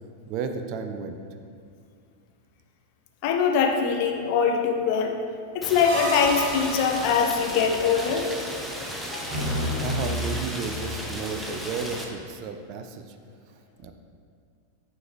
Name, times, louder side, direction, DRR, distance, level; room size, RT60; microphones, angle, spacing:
voice 1, 0.3-1.2 9.5-13.2 13.8-13.9, right 5 dB, 40° right, 6 dB, 0.4 m, -33 dB
voice 2, 3.2-5.1 5.5-8.3 9.1-9.2, left 6 dB, 45° left, 3 dB, 0.6 m, -23 dB
Rain, 5.6-12.0, equal, 5° right, 0.7 m, -35 dB
sound 1, 5.8-7.5 9.3-10.9, equal, 60° right, 1.2 m, -31 dB
9.1 x 3.3 x 3.2 m, 2.3 s
figure-of-eight pair, 90°, 0 cm